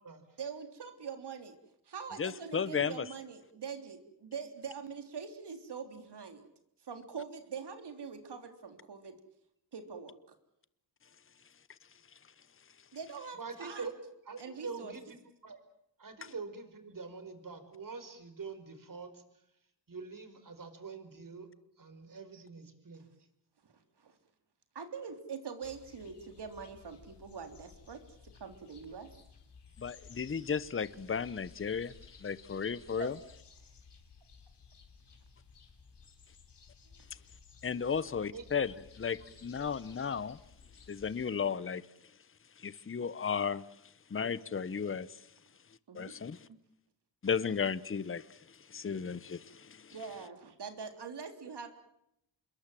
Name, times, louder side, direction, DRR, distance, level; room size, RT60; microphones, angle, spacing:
voice 1, 0.4-1.6 1.9-6.5 6.8-9.2 9.7-10.2 12.9-13.9 14.4-14.9 22.3-22.4 23.6-24.1 24.8-28.0 28.4-29.1 33.0-33.1 45.9-46.1 46.5-46.6 49.9-51.8, right 6 dB, 60° right, 3.6 m, -44 dB
voice 2, 2.2-3.1 16.2-16.3 29.8-31.9 32.2-33.1 37.6-40.4 40.9-41.9 42.6-43.6 44.1-45.3 45.9-46.5 47.2-49.9, left 6 dB, 30° left, 1.0 m, -34 dB
voice 3, 13.3-13.9 14.3-15.0 15.4-15.6 16.0-19.2 19.9-21.5 21.8-23.0 38.3-38.4, right 4 dB, 45° right, 4.9 m, -44 dB
sound 1, 25.6-41.3, left 5 dB, 65° left, 4.7 m, -57 dB
27.0 x 22.0 x 7.7 m
cardioid pair, 80°, 44 cm